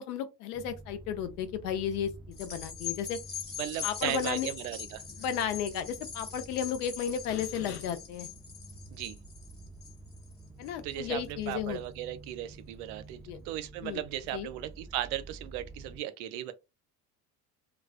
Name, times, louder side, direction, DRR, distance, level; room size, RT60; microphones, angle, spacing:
voice 1, 0.0-3.2 3.8-4.5 5.2-8.3 10.6-11.8 13.3-13.4 13.8-14.0 14.3-14.5, left 8 dB, 85° left, 0.6 m, -33 dB
sound 1, 0.5-16.0, right 2 dB, 5° right, 0.4 m, -50 dB
sound 2, 2.3-11.0 11.5-11.6, left 8 dB, 20° left, 0.7 m, -42 dB
voice 2, 3.6-5.0 8.9-9.2 10.8-13.2 13.4-16.5, right 13 dB, 75° right, 0.5 m, -36 dB
2.3 x 2.3 x 2.4 m
hypercardioid pair, 70°, 45 cm